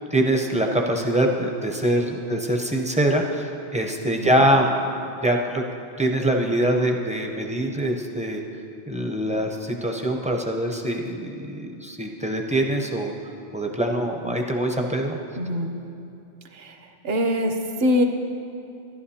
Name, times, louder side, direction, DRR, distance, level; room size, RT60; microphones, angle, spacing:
voice 1, 0.0-4.7 5.2-5.6 6.0-8.4 8.9-13.1 13.5-15.2, right 1 dB, 10° right, 1 dB, 0.4 m, -23 dB
voice 2, 4.2-4.5 15.4-15.7 16.5-18.1, left 1 dB, 60° right, 5 dB, 1.0 m, -24 dB
14.5 x 11.5 x 2.8 m, 2.7 s
omnidirectional pair, 1.2 m